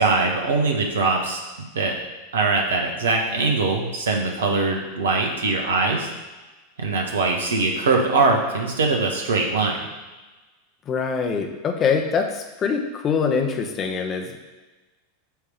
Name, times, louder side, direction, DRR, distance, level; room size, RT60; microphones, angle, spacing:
voice 1, 0.0-1.9 2.3-6.1 6.8-9.8, right 3 dB, 65° right, 2 dB, 1.3 m, -22 dB
voice 2, 10.9-14.4, left 6 dB, 30° left, 4 dB, 1.1 m, -24 dB
8.0 x 3.5 x 6.5 m, 1.2 s
figure-of-eight pair, 85°, 0 cm